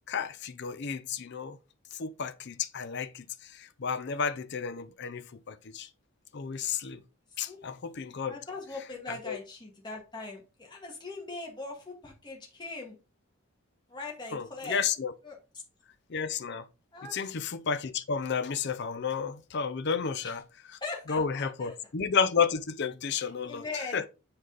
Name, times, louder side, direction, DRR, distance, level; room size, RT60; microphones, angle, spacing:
voice 1, 0.1-1.6 2.0-3.2 3.8-5.9 6.3-7.0 7.4-8.4 9.3-9.4 14.3-15.1 16.1-16.6 17.1-20.4 21.1-23.6 23.9-24.1, left 6 dB, 50° left, 0.5 m, -31 dB
voice 2, 8.3-13.0 13.9-14.8 15.2-15.4 16.9-17.2 20.2-20.4 20.8-21.8 23.1-24.0, left 3 dB, 20° left, 1.7 m, -41 dB
7.8 x 4.0 x 3.9 m
head